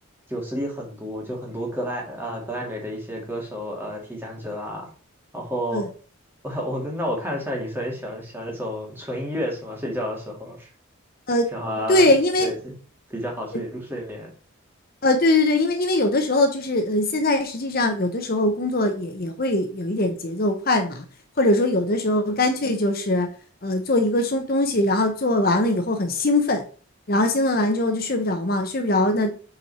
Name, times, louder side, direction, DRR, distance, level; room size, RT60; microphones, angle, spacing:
voice 1, 0.3-4.9 5.3-5.8 6.4-10.7 11.5-12.1 12.4-12.7 13.1-14.3, equal, 10° right, -1 dB, 2.4 m, -30 dB
voice 2, 11.9-12.5 15.0-21.0 21.4-23.3 23.6-26.6 27.1-29.3, left 2 dB, 45° left, 5 dB, 0.9 m, -21 dB
7.7 x 4.6 x 4.2 m, 0.39 s
head